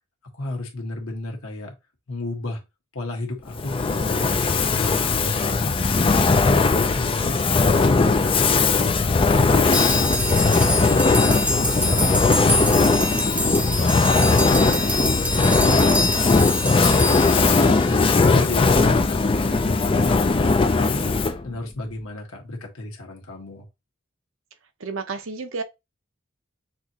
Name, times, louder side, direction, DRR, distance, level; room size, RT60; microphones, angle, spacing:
voice 1, 0.3-1.7 2.1-2.6 2.9-4.4 4.8-6.6 6.9-9.0 9.3-10.7 11.0-13.1 13.5-14.4 14.7-17.5 17.9-19.2 19.5-21.1 21.4-23.7, left 2 dB, 90° left, 1.5 m, -33 dB
Fire, 3.5-21.5, left 3 dB, 25° left, 0.4 m, -19 dB
sound 1, 9.7-18.2, equal, 5° right, 0.8 m, -26 dB
voice 2, 24.8-25.6, right 4 dB, 65° right, 0.8 m, -31 dB
6.0 x 3.0 x 2.8 m
head